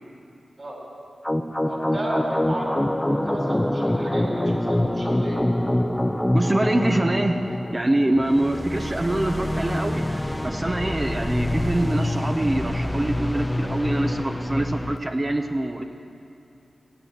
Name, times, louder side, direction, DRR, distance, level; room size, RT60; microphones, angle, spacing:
sound 1, 1.2-15.0, left 1 dB, 15° left, 0.6 m, -25 dB
voice 1, 1.7-2.8 3.1-5.4, right 1 dB, 50° right, -1 dB, 4.2 m, -33 dB
voice 2, 6.3-7.4 7.7-10.0 10.4-15.8, right 1 dB, 30° right, 5 dB, 0.8 m, -24 dB
17.0 x 7.9 x 7.2 m, 2.7 s
cardioid pair, 45°, 0 cm